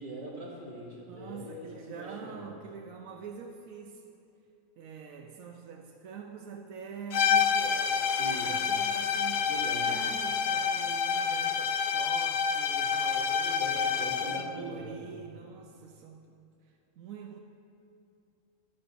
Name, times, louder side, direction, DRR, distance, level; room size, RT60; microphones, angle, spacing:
voice 1, 0.0-2.4 8.0-8.6 9.5-9.9 13.6-15.1, right 1 dB, 40° right, -8 dB, 2.7 m, -42 dB
voice 2, 1.1-4.0 4.8-9.5 9.9-16.4 16.7-17.4, right 6 dB, 85° right, 2 dB, 1.1 m, -45 dB
sound 1, 7.1-14.5, left 6 dB, 65° left, 0.5 m, -28 dB
13.5 x 11.5 x 2.6 m, 2.6 s
omnidirectional pair, 1.4 m